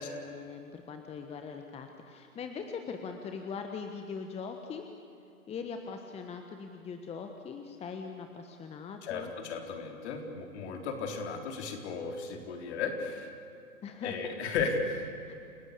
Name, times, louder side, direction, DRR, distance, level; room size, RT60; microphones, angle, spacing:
voice 1, 0.0-4.8 5.5-9.3 13.8-14.1 15.3-15.4, left 5 dB, 15° left, 5 dB, 1.4 m, -41 dB
voice 2, 9.0-13.3 14.0-15.1, left 4 dB, 50° left, 4 dB, 4.0 m, -35 dB
29.0 x 17.0 x 8.5 m, 2.7 s
figure-of-eight pair, 120°, 42 cm